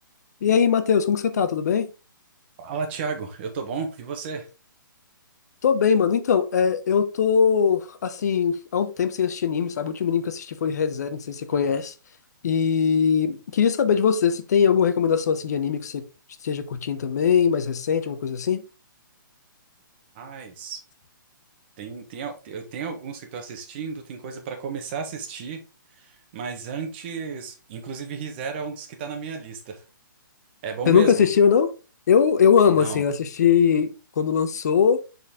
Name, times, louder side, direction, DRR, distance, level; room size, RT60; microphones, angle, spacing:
voice 1, 0.4-1.9 5.6-11.9 12.4-16.0 16.4-18.6 30.9-31.7 32.1-35.0, left 7 dB, 50° left, 0.7 m, -21 dB
voice 2, 2.6-4.5 20.1-20.8 21.8-25.6 25.9-29.8 30.6-31.2 32.7-33.0, right 5 dB, 30° right, 1.2 m, -33 dB
6.9 x 4.2 x 3.6 m
hypercardioid pair, 160°, 11 cm